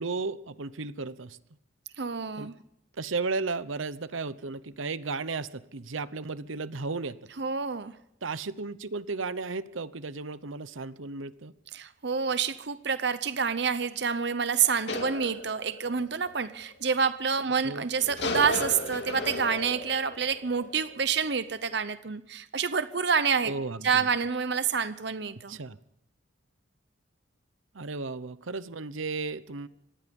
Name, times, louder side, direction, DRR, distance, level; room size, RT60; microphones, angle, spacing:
voice 1, 0.0-1.4 2.4-2.5 3.0-7.2 8.2-11.5 17.6-17.9 23.5-24.1 25.5-25.8 27.7-29.7, right 3 dB, 85° right, 15 dB, 0.9 m, -34 dB
voice 2, 2.0-2.5 7.4-7.9 11.7-23.5 23.8-25.6, right 6 dB, 55° right, 13 dB, 0.8 m, -28 dB
sound 1, 14.5-16.8 18.0-21.6, left 2 dB, 60° left, 2.8 m, -36 dB
25.5 x 19.5 x 5.4 m, 0.81 s
head